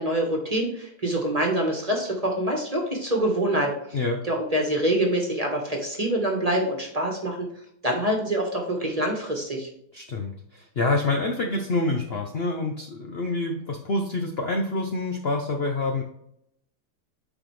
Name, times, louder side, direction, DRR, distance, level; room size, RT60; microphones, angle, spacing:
voice 1, 0.0-3.7 4.2-7.5 7.8-9.7, right 1 dB, 25° right, 1 dB, 1.2 m, -25 dB
voice 2, 9.9-16.0, left 2 dB, 50° left, 2 dB, 0.8 m, -27 dB
9.8 x 4.1 x 3.2 m, 0.71 s
omnidirectional pair, 1.8 m